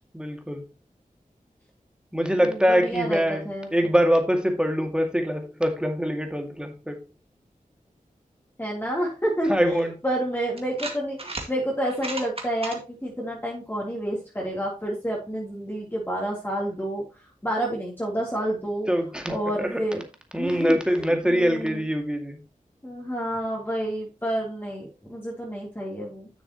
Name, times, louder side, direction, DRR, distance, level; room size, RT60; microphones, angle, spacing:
voice 1, 0.1-0.7 2.1-7.0 9.5-10.0 18.9-20.0 20.3-22.4, equal, 5° right, 2.1 m, -24 dB
voice 2, 2.4-3.7 8.6-17.0 17.4-18.9 19.3-20.0 20.4-21.8 22.8-26.3, right 1 dB, 15° left, 3.2 m, -29 dB
sound 1, 9.8-9.9 10.6-11.5 11.9-12.8, right 2 dB, 40° right, 2.1 m, -34 dB
10.5 x 6.6 x 3.0 m
wide cardioid pair, 60°, 14 cm